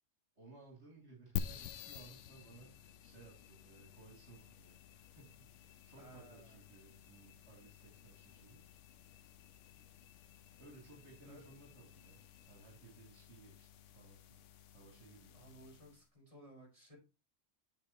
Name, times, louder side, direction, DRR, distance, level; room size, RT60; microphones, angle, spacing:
voice 1, 0.3-4.8 5.2-8.6 10.6-12.2 12.5-15.4, right 2 dB, 60° right, 3.3 m, -59 dB
sound 1, 1.4-16.1, left 8 dB, 75° left, 1.0 m, -50 dB
voice 2, 6.0-6.6 11.3-11.4 15.3-17.0, right 1 dB, 25° right, 5.3 m, -57 dB
8.8 x 7.6 x 3.0 m
omnidirectional pair, 1.3 m